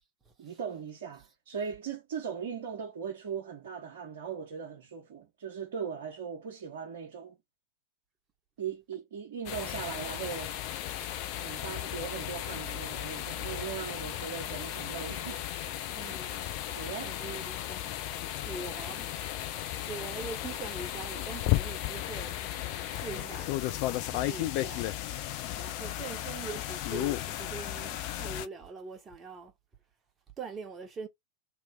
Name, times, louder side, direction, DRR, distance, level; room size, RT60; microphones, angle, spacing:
voice 1, 0.4-7.4 8.6-10.5 11.3-15.5 15.8-16.0 16.7-17.2 23.1-23.4, right 7 dB, 60° right, 1.0 m, -39 dB
sound 1, 9.5-28.5, left 14 dB, 45° left, 0.6 m, -35 dB
voice 2, 15.9-16.4 17.0-18.0 18.4-19.1 19.9-22.4 22.9-23.5 24.1-24.9 25.6-29.5 30.4-31.1, right 4 dB, 20° right, 1.2 m, -42 dB
3.0 x 3.0 x 3.5 m
figure-of-eight pair, 90°, 0 cm